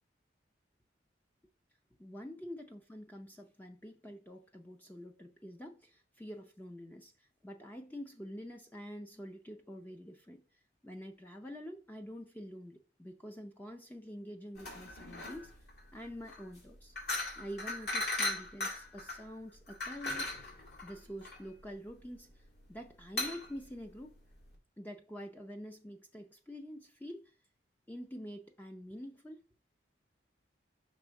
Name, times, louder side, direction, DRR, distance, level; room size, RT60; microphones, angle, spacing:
voice 1, 2.0-15.5 15.9-16.9 17.4-20.3 20.8-24.1 24.8-27.3 27.9-29.4, equal, 10° left, 0.5 m, -47 dB
sound 1, 14.6-24.5, left 2 dB, 60° left, 2.1 m, -39 dB
6.1 x 3.5 x 5.7 m
head